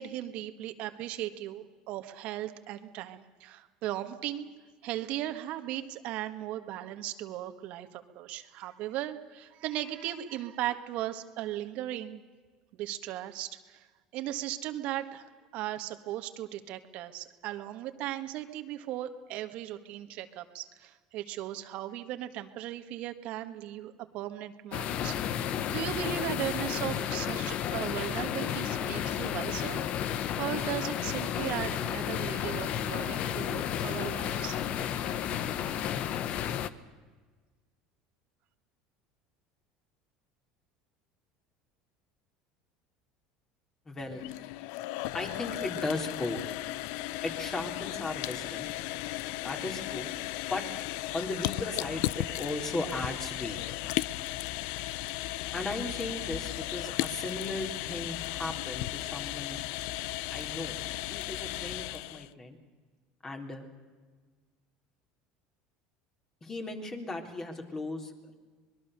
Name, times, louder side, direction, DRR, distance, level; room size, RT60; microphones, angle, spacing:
voice 1, 0.0-4.5 4.8-12.2 12.7-13.9 14.1-15.2 15.5-29.8 30.4-34.6, right 13 dB, 65° right, 7 dB, 1.6 m, -37 dB
sound 1, 24.7-36.7, left 10 dB, 55° left, 1.1 m, -32 dB
voice 2, 43.9-44.3 45.1-46.4 47.2-48.7 49.4-50.1 50.5-50.7 51.1-53.6 55.5-59.6 60.3-60.8 61.1-62.6 63.2-63.7 66.4-68.3, left 2 dB, 25° left, 4 dB, 3.9 m, -36 dB
sound 2, 44.0-62.3, left 17 dB, 75° left, 0.6 m, -35 dB
25.0 x 21.0 x 6.8 m, 1.4 s
supercardioid pair, 95°, 2 cm